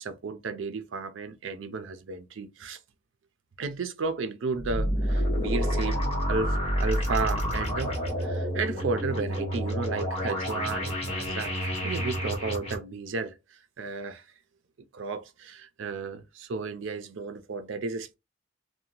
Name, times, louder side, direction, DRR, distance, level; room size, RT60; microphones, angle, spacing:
voice 1, 0.0-2.8 3.6-14.2 14.9-18.2, right 4 dB, 80° right, 0.5 m, -33 dB
sound 1, 4.6-12.8, equal, 35° left, 1.1 m, -29 dB
2.7 x 2.2 x 2.9 m
head